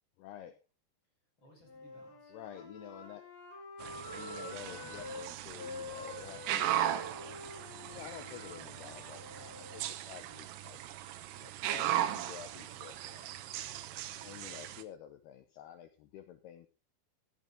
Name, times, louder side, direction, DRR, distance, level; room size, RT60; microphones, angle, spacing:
voice 1, 0.2-0.6 2.3-3.2 4.1-7.4 7.9-13.3 14.2-16.7, left 11 dB, 80° left, 9 dB, 2.4 m, -50 dB
voice 2, 1.4-2.3 13.5-14.3, right 1 dB, 25° left, 1 dB, 5.5 m, -62 dB
Wind instrument woodwind instrument, 1.6-5.2 5.6-9.9, left 2 dB, 65° left, 6.7 m, -47 dB
sound 1, 3.8-14.8, right 12 dB, 75° right, 2.7 m, -38 dB
14.5 x 12.0 x 3.6 m, 0.29 s
omnidirectional pair, 5.5 m